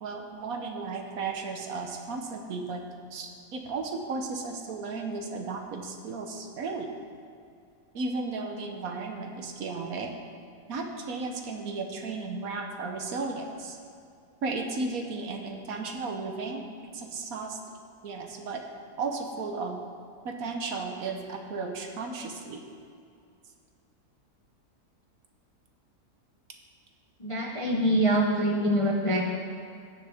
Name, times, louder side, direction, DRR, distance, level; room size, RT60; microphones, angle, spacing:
voice 1, 0.0-2.8 3.1-6.9 7.9-10.1 10.7-13.8 14.4-16.6 16.9-17.6 18.0-18.6 19.0-19.8 20.2-22.6 28.3-28.7, right 3 dB, 65° right, 4 dB, 1.3 m, -34 dB
voice 2, 27.2-29.2, right 1 dB, 35° left, -1 dB, 0.5 m, -25 dB
16.5 x 6.6 x 3.5 m, 2.5 s
omnidirectional pair, 1.7 m